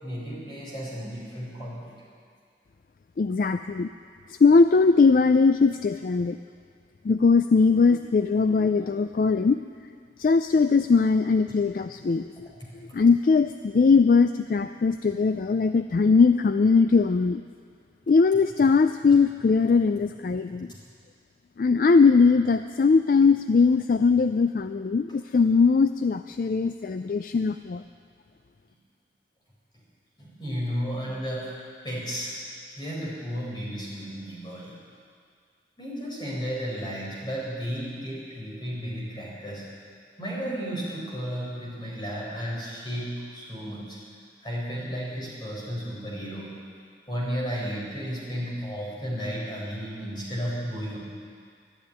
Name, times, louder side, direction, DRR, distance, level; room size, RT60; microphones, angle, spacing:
voice 1, 0.0-1.9 12.8-13.0 20.5-20.6 30.2-31.6 31.8-32.4 32.8-34.7 35.8-39.6 40.2-44.0 44.4-46.5 47.1-51.0, equal, 25° left, -5 dB, 4.8 m, -33 dB
voice 2, 3.2-3.9 4.4-6.4 7.0-9.6 10.2-12.5 12.9-17.4 18.1-20.7 21.6-27.8, left 4 dB, 50° left, 9 dB, 0.3 m, -20 dB
12.5 x 11.5 x 9.8 m, 2.1 s
head